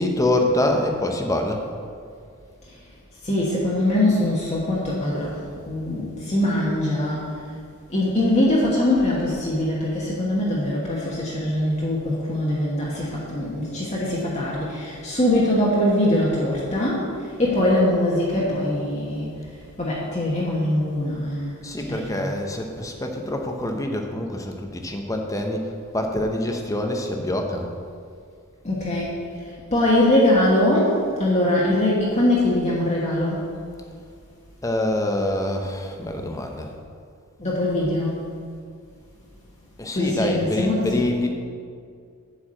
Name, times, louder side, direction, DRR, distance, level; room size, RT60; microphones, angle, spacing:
voice 1, 0.0-1.6 21.6-27.7 34.6-36.7 39.8-41.3, left 1 dB, 15° left, 3 dB, 0.7 m, -25 dB
voice 2, 3.2-5.3 5.7-7.3 7.9-17.1 17.4-19.3 19.8-21.6 21.9-22.3 28.6-29.1 29.7-33.4 37.4-38.2 39.9-41.1, left 1 dB, 30° left, -6 dB, 1.3 m, -22 dB
8.4 x 4.8 x 7.5 m, 2.2 s
head